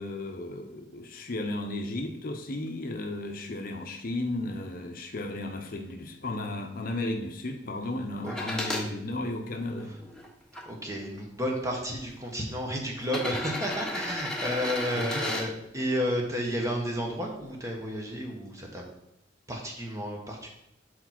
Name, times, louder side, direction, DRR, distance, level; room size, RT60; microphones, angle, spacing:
voice 1, 0.0-10.0 14.9-15.2, left 2 dB, 50° left, 5 dB, 0.7 m, -34 dB
sound 1, 8.3-8.9 9.6-10.6 11.6-11.7 13.0-15.5 17.3-17.4, left 1 dB, 5° left, 1.0 m, -34 dB
voice 2, 10.7-18.8 19.5-20.5, equal, 15° right, 0 dB, 1.1 m, -32 dB
4.9 x 4.4 x 5.8 m, 0.81 s
head